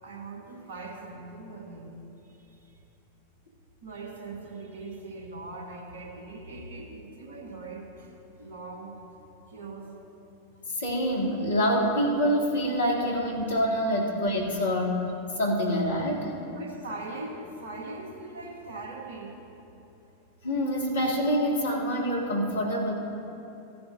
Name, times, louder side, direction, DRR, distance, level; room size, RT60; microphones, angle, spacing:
voice 1, 0.0-2.0 3.8-8.1 8.4-9.0 9.5-9.9 16.5-19.4, right 2 dB, 60° right, 1 dB, 1.5 m, -40 dB
voice 2, 10.7-15.1 15.4-16.3 20.4-22.9, equal, 65° left, -2 dB, 2.1 m, -26 dB
16.0 x 11.0 x 2.7 m, 2.9 s
figure-of-eight pair, 90°, 0 cm